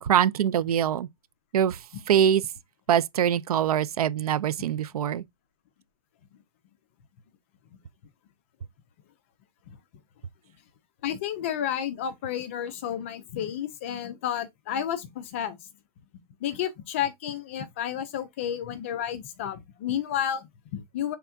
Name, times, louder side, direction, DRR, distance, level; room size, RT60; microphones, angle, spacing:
voice 1, 0.0-1.1 1.5-1.8 2.1-2.4 2.9-5.2, right 9 dB, 70° right, 0.4 m, -23 dB
voice 2, 11.0-15.6 16.4-21.2, left 10 dB, 20° left, 0.3 m, -31 dB
5.6 x 3.5 x 2.4 m
hypercardioid pair, 165°, 20 cm